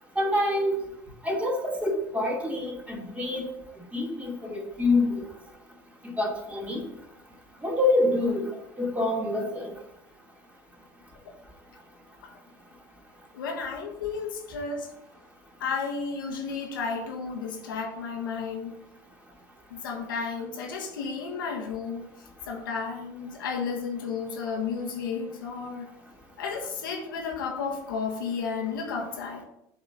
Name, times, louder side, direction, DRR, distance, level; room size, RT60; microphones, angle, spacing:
voice 1, 0.2-0.7 1.2-3.5 3.9-5.1 6.0-6.8 7.6-8.4 8.8-9.7, left 2 dB, 10° right, -2 dB, 2.5 m, -26 dB
voice 2, 13.3-14.9 15.6-18.7 19.7-22.0 22.5-25.9 26.4-29.4, left 5 dB, 85° left, 1 dB, 1.2 m, -32 dB
7.6 x 4.3 x 3.9 m, 0.79 s
hypercardioid pair, 75°, 11 cm